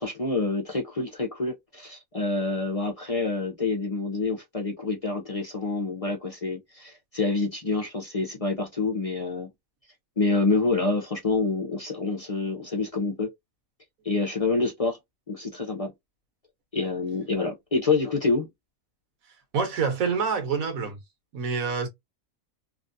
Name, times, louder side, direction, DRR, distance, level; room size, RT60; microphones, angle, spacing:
voice 1, 0.0-9.5 10.2-13.3 14.0-15.0 15.3-15.9 16.7-18.5, left 3 dB, 35° left, 0.6 m, -27 dB
voice 2, 19.5-21.0 21.3-21.9, right 5 dB, 90° right, 1.4 m, -26 dB
3.0 x 2.4 x 2.5 m
omnidirectional pair, 1.4 m